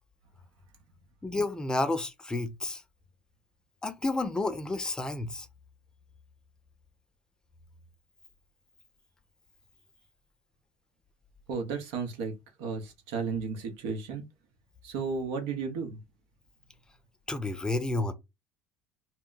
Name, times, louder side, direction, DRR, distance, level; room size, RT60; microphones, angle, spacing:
voice 1, 1.2-2.8 3.8-5.5 17.3-18.1, left 2 dB, 15° left, 0.5 m, -30 dB
voice 2, 11.5-14.2 14.8-16.0, right 5 dB, 80° right, 0.9 m, -34 dB
2.2 x 2.1 x 3.8 m
supercardioid pair, 85°, 5 cm